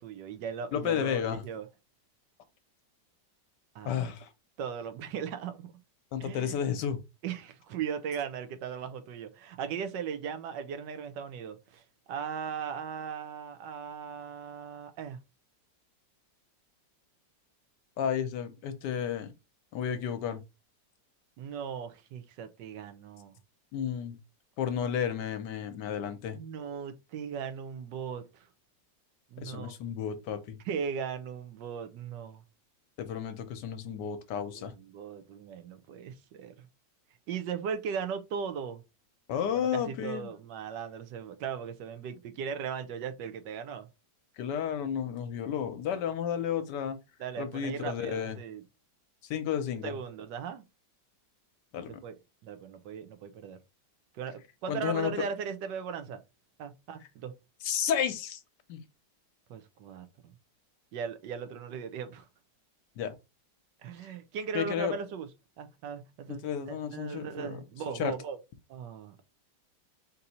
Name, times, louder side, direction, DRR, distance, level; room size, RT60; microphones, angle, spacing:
voice 1, 0.0-1.7 3.7-4.1 4.6-5.7 6.2-6.6 7.2-11.8 12.1-15.2 21.4-23.3 26.3-28.5 29.3-29.8 30.6-32.4 34.4-36.5 37.3-38.8 39.5-43.9 47.2-48.6 49.8-50.6 51.8-52.1 52.4-53.6 54.1-56.2 56.6-57.3 59.5-60.3 60.9-62.2 63.8-65.3 65.6-68.4 68.7-69.2, right 7 dB, 80° right, 1.3 m, -38 dB
voice 2, 0.7-1.4 3.8-4.3 6.1-7.0 18.0-19.3 19.7-20.4 23.7-24.2 24.6-26.4 29.4-30.6 33.0-34.7 39.3-40.3 44.4-47.0 47.4-48.4 49.3-50.0 51.7-52.0 54.7-55.1 57.6-58.4 58.7-58.8 63.0-63.1 64.5-64.9 66.3-67.6 68.0-68.1, left 8 dB, 75° left, 1.2 m, -32 dB
4.0 x 2.6 x 4.1 m
omnidirectional pair, 1.9 m